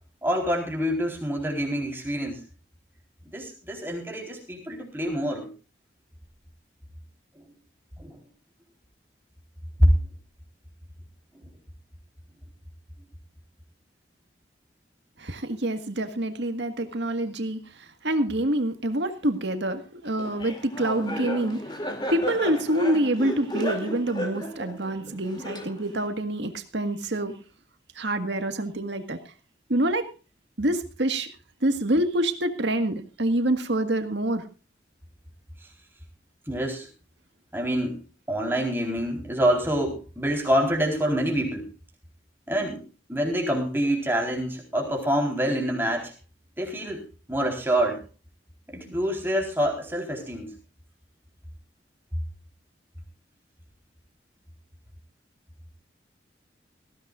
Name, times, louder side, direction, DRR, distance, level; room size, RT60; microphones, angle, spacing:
voice 1, 0.2-2.4 3.3-5.5 7.3-7.4 8.0-8.2 9.8-9.9 11.3-11.5 36.5-36.9 37.5-38.0 38.3-41.7 42.5-42.8 43.1-46.1 46.6-48.0 48.7-50.5, equal, 10° right, 4.2 m, -26 dB
voice 2, 15.2-21.6 22.1-27.4 27.9-29.2 29.7-30.1 30.6-31.3 31.6-34.4, right 1 dB, 75° right, 1.8 m, -26 dB
Laughter, 20.2-26.1, equal, 25° left, 2.7 m, -34 dB
19.5 x 15.5 x 2.5 m
head